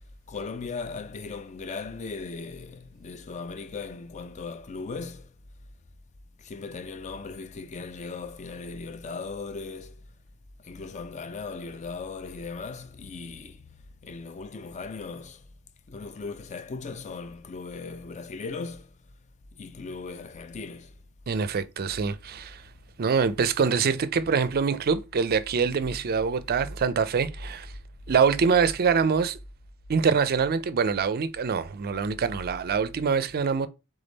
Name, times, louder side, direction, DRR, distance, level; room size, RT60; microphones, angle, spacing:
voice 1, 0.3-5.3 6.4-10.0 10.6-13.7 14.0-15.4 15.9-18.9 19.6-20.9, left 4 dB, 30° left, 0.4 m, -38 dB
voice 2, 21.3-22.6 23.0-27.7 28.1-29.4 29.9-33.7, right 5 dB, 45° right, 0.4 m, -24 dB
3.6 x 3.5 x 4.0 m
head